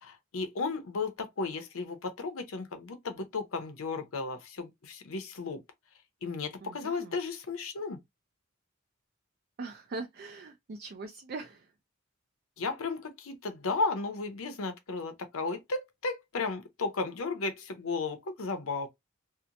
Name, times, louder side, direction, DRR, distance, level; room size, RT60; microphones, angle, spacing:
voice 1, 0.0-5.6 6.2-8.0 12.6-18.9, left 3 dB, 90° left, 0.7 m, -34 dB
voice 2, 6.6-7.1 9.6-11.7, right 3 dB, 50° right, 0.4 m, -41 dB
2.8 x 2.1 x 2.5 m
head